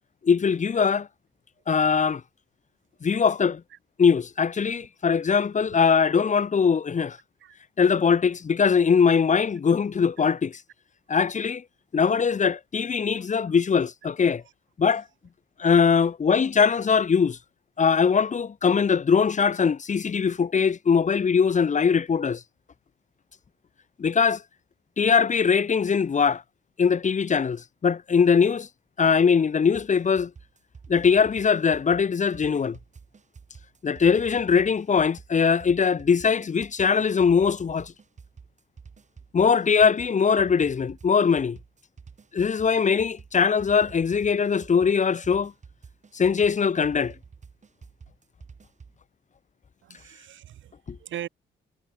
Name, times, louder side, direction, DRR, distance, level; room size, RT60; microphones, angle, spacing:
voice 1, 0.2-1.1 1.7-2.2 3.0-3.6 4.0-7.2 7.8-10.6 11.1-11.6 11.9-14.4 14.8-15.0 15.6-17.4 17.8-22.4 24.0-24.4 25.0-26.4 26.8-28.7 29.0-30.3 30.9-32.8 33.8-37.9 39.3-41.6 42.3-45.5 46.1-47.1 50.9-51.0, left 6 dB, 40° left, 1.5 m, -21 dB
sound 1, 29.7-49.0, right 5 dB, 35° right, 5.5 m, -49 dB
voice 2, 49.8-50.7 51.0-51.3, right 11 dB, 75° right, 7.1 m, -39 dB
cardioid pair, 90°, 20 cm